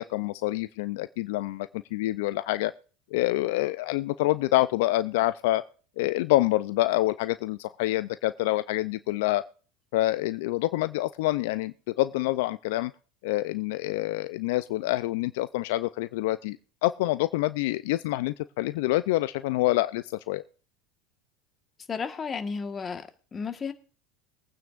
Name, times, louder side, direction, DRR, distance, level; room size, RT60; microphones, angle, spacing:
voice 1, 0.0-2.7 3.1-5.6 6.0-9.4 9.9-12.9 13.2-16.6 16.8-20.4, left 17 dB, 70° left, 0.4 m, -27 dB
voice 2, 21.9-23.7, left 5 dB, 30° left, 1.5 m, -33 dB
22.0 x 9.1 x 2.5 m
hypercardioid pair, 85°, 0 cm